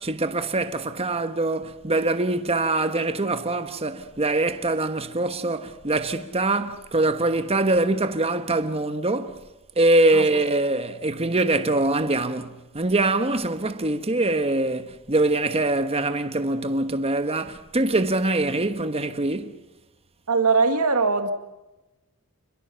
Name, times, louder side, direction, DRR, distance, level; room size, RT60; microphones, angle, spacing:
voice 1, 0.0-9.4 9.8-19.6, right 2 dB, 25° right, 1.2 m, -23 dB
voice 2, 20.3-21.3, right 4 dB, 85° right, 2.2 m, -20 dB
28.0 x 22.5 x 5.7 m
head